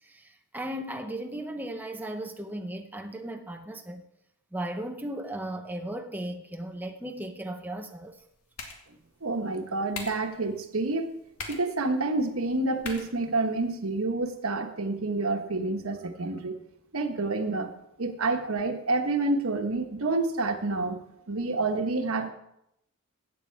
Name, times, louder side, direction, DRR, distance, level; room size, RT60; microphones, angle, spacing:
voice 1, 0.0-4.1 4.5-8.2, right 1 dB, 10° right, 0.7 m, -36 dB
sound 1, 8.0-14.0, left 4 dB, 90° left, 2.2 m, -45 dB
voice 2, 9.2-11.1 11.5-16.5 16.9-17.7 18.0-21.0 21.3-22.3, right 3 dB, 70° right, 1.4 m, -28 dB
15.0 x 9.2 x 4.7 m
head